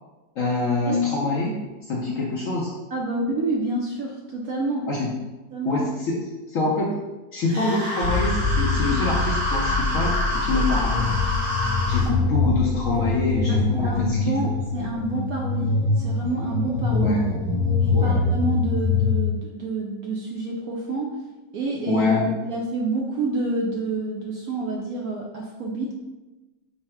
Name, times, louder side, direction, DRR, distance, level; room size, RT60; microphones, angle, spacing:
voice 1, 0.4-2.7 4.9-5.2 5.6-6.2 6.5-7.0 7.3-11.1 11.9-14.5 16.9-17.4 17.9-18.2 21.9-22.4, left 2 dB, 65° left, -3 dB, 0.8 m, -25 dB
voice 2, 2.9-4.9 5.5-5.9 13.5-17.1 17.8-21.1 21.5-22.0 22.4-25.9, right 2 dB, 70° right, -1 dB, 0.9 m, -28 dB
sound 1, 7.5-12.1, equal, 50° right, 2.1 m, -28 dB
sound 2, 8.0-19.1, left 4 dB, 30° right, 0.5 m, -24 dB
5.5 x 2.0 x 4.3 m, 1.1 s
omnidirectional pair, 2.0 m